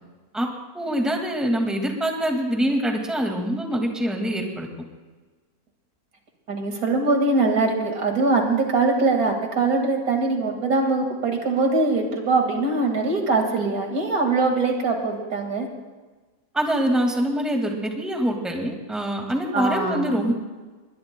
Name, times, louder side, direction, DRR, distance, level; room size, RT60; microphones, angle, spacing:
voice 1, 0.7-4.7 16.5-20.3, right 1 dB, ahead, 2 dB, 1.9 m, -24 dB
voice 2, 6.5-15.7 19.5-20.2, right 3 dB, 70° right, 2 dB, 2.6 m, -22 dB
21.5 x 21.0 x 2.2 m, 1.3 s
omnidirectional pair, 1.6 m